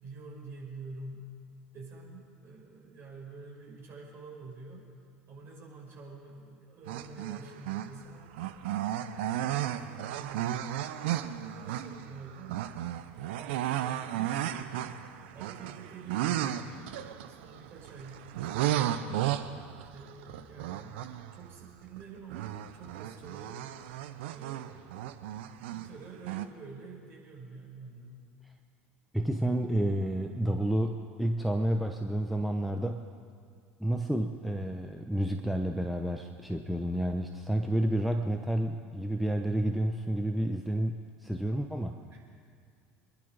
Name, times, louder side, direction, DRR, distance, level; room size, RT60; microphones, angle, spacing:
voice 1, 0.0-1.3 1.7-4.9 5.3-8.4 9.1-10.5 11.1-12.7 13.3-14.9 15.3-16.7 17.0-19.3 19.9-21.0 21.3-23.7 24.3-25.0 25.7-28.2 42.1-42.2, right 4 dB, 40° right, -2 dB, 5.6 m, -47 dB
sound 1, 6.9-8.0 8.3-22.0 22.3-25.9 26.2-26.5, right 12 dB, 65° right, 0.8 m, -34 dB
voice 2, 29.1-33.1 33.8-42.0, right 1 dB, ahead, 3 dB, 0.9 m, -30 dB
24.0 x 11.5 x 5.2 m, 2.1 s
figure-of-eight pair, 75°, 6 cm